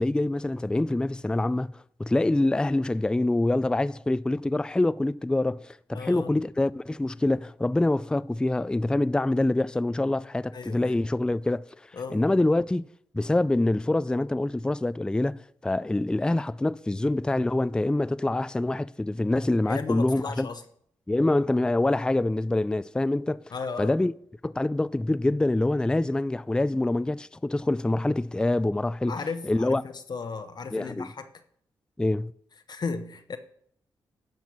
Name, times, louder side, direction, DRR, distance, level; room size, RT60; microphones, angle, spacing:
voice 1, 0.0-11.6 12.1-12.9 13.1-20.5 21.1-23.4 23.8-24.1 24.4-29.1 29.4-29.8 30.7-31.1 32.0-32.3, left 2 dB, 10° left, 0.3 m, -25 dB
voice 2, 5.9-6.3 10.5-11.0 11.9-12.2 19.7-20.6 23.5-23.9 29.1-31.3 32.7-33.4, left 4 dB, 50° left, 0.9 m, -35 dB
12.0 x 4.4 x 7.3 m
supercardioid pair, 55°, 9 cm